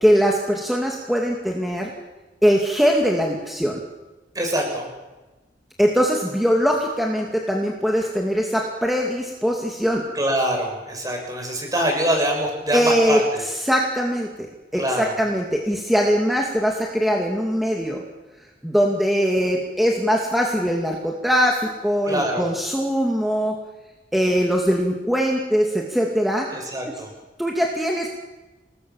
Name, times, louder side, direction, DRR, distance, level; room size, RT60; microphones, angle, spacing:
voice 1, 0.0-1.9 2.4-3.8 5.8-10.0 12.7-13.2 13.6-14.5 14.7-18.0 18.6-23.6 24.1-26.5 27.4-28.1, equal, ahead, 0 dB, 2.5 m, -21 dB
voice 2, 4.3-4.9 10.1-13.4 14.7-15.1 22.0-22.5 26.5-27.1, right 1 dB, 20° right, 2 dB, 7.3 m, -24 dB
28.0 x 20.5 x 7.3 m, 1.1 s
head